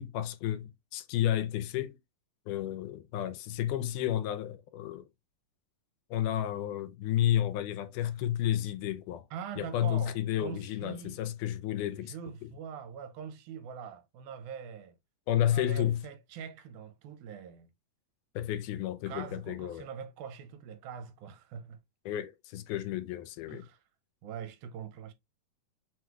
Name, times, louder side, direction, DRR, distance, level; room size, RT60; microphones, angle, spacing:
voice 1, 0.0-2.0 2.5-5.1 6.1-9.3 9.6-12.1 12.4-12.5 15.3-16.0 18.4-19.8 22.1-23.7, left 12 dB, 85° left, 2.1 m, -31 dB
voice 2, 9.3-11.2 12.0-15.0 15.5-17.7 19.1-21.8 23.5-23.8 24.2-25.1, right 7 dB, 85° right, 2.1 m, -43 dB
5.9 x 2.3 x 3.0 m
omnidirectional pair, 3.6 m